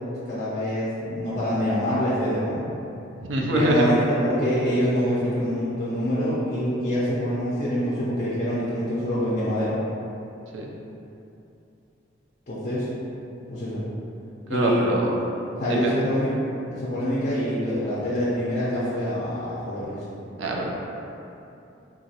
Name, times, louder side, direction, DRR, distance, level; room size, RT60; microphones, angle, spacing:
voice 1, 0.2-2.6 3.5-9.8 12.5-12.9 13.5-13.9 14.5-14.9 15.6-16.3 16.7-20.0, equal, 40° left, -9 dB, 0.5 m, -25 dB
voice 2, 3.3-3.9 10.5-10.7 14.5-15.1 15.7-16.0 20.4-20.7, right 1 dB, 75° right, -2 dB, 0.4 m, -24 dB
2.9 x 2.4 x 2.8 m, 2.8 s
head